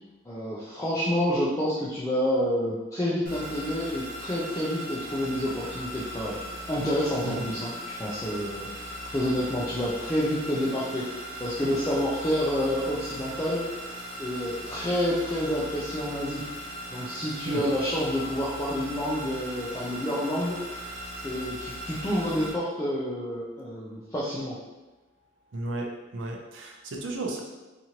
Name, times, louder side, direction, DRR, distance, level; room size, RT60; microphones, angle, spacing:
voice 1, 0.3-6.4 6.7-7.7 8.0-11.1 11.4-13.6 14.2-16.4 16.9-20.6 21.2-24.6, equal, 15° left, -8 dB, 0.3 m, -28 dB
sound 1, 3.3-22.5, equal, 45° right, 0.8 m, -39 dB
voice 2, 25.5-27.4, right 2 dB, 80° right, 1 dB, 0.5 m, -34 dB
2.9 x 2.5 x 2.8 m, 1.1 s
head